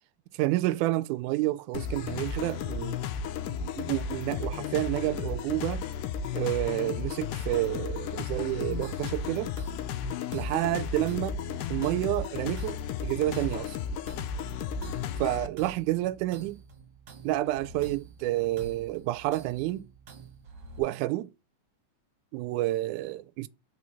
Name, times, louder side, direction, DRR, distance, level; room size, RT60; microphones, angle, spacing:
voice 1, 0.3-3.0 3.6-5.8 6.3-9.5 10.3-11.4 11.7-13.8 15.2-16.6 17.2-19.9 20.8-21.3 22.3-23.5, right 16 dB, 80° right, 1.9 m, -29 dB
sound 1, 1.7-15.5, left 6 dB, 85° left, 2.2 m, -34 dB
sound 2, 8.8-20.8, right 5 dB, 55° right, 1.4 m, -47 dB
4.9 x 4.3 x 5.9 m
omnidirectional pair, 3.8 m